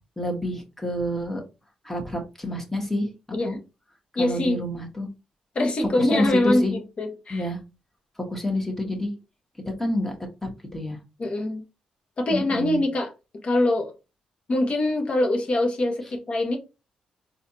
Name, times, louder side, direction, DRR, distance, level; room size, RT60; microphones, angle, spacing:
voice 1, 0.2-1.4 1.8-3.1 3.4-3.6 4.2-5.1 6.0-6.7 7.3-7.6 8.3-9.1 9.8-10.1 10.4-11.0 12.3-12.8, left 1 dB, 10° left, 1.6 m, -28 dB
voice 2, 4.1-4.6 5.5-7.5 11.2-11.6 12.2-13.1 13.4-13.9 14.5-16.6, left 1 dB, 50° left, 1.3 m, -24 dB
4.1 x 2.7 x 2.8 m
supercardioid pair, 55°, 2 cm